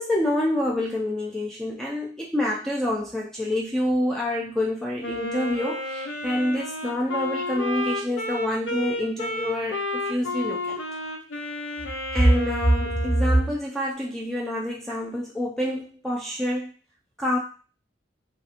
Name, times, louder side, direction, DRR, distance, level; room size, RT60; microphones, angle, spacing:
voice 1, 0.0-10.8 12.1-16.7 17.2-17.4, equal, ahead, -4 dB, 0.3 m, -26 dB
Wind instrument woodwind instrument, 5.0-13.5, left 1 dB, 90° left, 0.5 m, -31 dB
2.8 x 2.4 x 2.4 m, 0.37 s
head